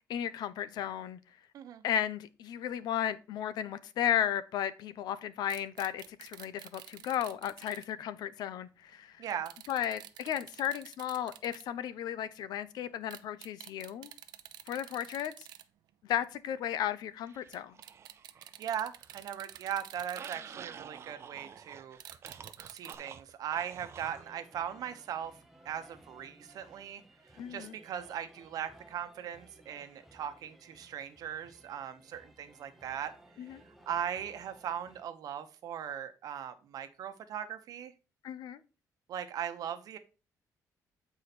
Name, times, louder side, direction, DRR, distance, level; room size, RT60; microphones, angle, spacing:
voice 1, 0.1-1.2 1.8-9.2 9.7-14.1 14.7-15.5 16.0-17.8 27.4-27.7 33.4-33.6 38.2-38.6, left 10 dB, 85° left, 0.7 m, -34 dB
Close rewind of metronome and a music box, 5.5-7.9 9.4-11.6 13.1-15.6 15.9-16.0 17.5-17.6 17.8-20.9 22.0-22.9, right 12 dB, 80° right, 0.6 m, -50 dB
voice 2, 9.2-9.5 18.6-22.0 22.7-25.4 25.6-27.0 27.3-33.1 33.4-37.9 39.1-40.0, right 9 dB, 65° right, 1.0 m, -39 dB
sound 1, 17.3-18.6 18.9-24.3, right 7 dB, 40° right, 0.6 m, -49 dB
sound 2, 23.8-35.0, right 1 dB, 5° right, 1.0 m, -59 dB
8.1 x 4.8 x 4.3 m
cardioid pair, 160°, 7 cm